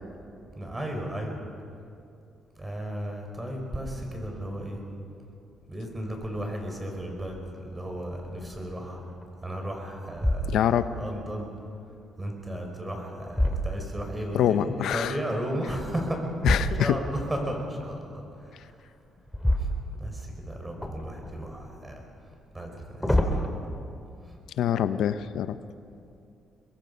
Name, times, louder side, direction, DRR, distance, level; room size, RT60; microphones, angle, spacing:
voice 1, 0.6-1.4 2.6-4.8 5.7-9.0 9.4-10.6 11.0-11.5 12.2-16.2 16.8-18.7 19.4-19.7 20.0-22.0 22.5-23.5, right 1 dB, 20° right, 2 dB, 5.2 m, -34 dB
sound 1, 7.3-7.7 8.2-8.3 9.0-9.5 10.1-11.0 12.6-14.3 16.4-17.2 19.3-20.4 20.8-21.6 22.6-23.5, equal, 5° left, 2.3 m, -28 dB
voice 2, 10.5-10.9 14.3-15.2 16.4-17.0 24.6-25.6, left 10 dB, 80° left, 12 dB, 0.6 m, -25 dB
24.0 x 21.0 x 5.4 m, 2.6 s
cardioid pair, 90°, 0 cm